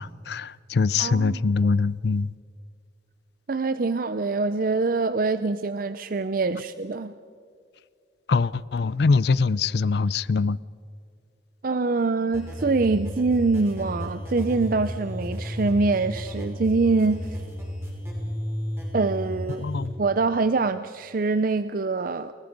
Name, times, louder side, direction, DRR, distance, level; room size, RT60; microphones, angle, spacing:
voice 1, 0.0-2.3 8.3-10.6 19.6-19.9, left 4 dB, 60° left, 0.4 m, -23 dB
voice 2, 1.0-1.4 3.5-7.1 11.6-17.3 18.9-19.7 20.0-22.3, right 3 dB, 45° right, 0.5 m, -24 dB
sound 1, 12.3-19.9, equal, 15° right, 5.5 m, -33 dB
30.0 x 20.5 x 5.3 m
head